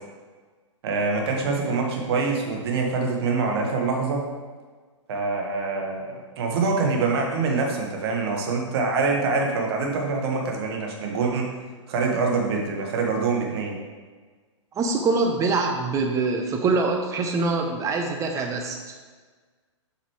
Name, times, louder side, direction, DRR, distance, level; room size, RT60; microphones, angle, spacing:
voice 1, 0.8-4.2 5.1-6.1 6.4-11.5 11.9-13.8, right 4 dB, 55° right, 1 dB, 1.6 m, -25 dB
voice 2, 14.8-18.8, right 3 dB, 20° right, 3 dB, 0.9 m, -24 dB
8.0 x 5.7 x 3.2 m, 1.4 s
hypercardioid pair, 125°, 16 cm